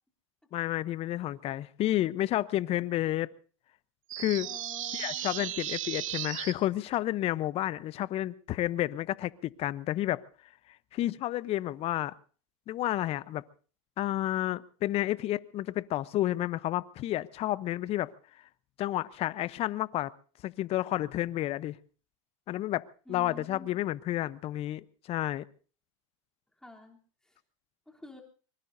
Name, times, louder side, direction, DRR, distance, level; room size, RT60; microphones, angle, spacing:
voice 1, 0.5-3.3 4.2-4.5 4.9-10.2 10.9-12.1 12.7-13.4 14.0-18.1 18.8-20.1 20.4-21.8 22.5-25.4, left 14 dB, 35° left, 0.7 m, -31 dB
sound 1, 4.1-6.5, right 13 dB, 75° right, 1.4 m, -35 dB
voice 2, 4.4-5.6 23.1-23.8 26.6-27.0 27.2-27.4 27.9-28.2, left 1 dB, 5° left, 3.2 m, -50 dB
24.0 x 22.0 x 2.7 m
hypercardioid pair, 105°, 17 cm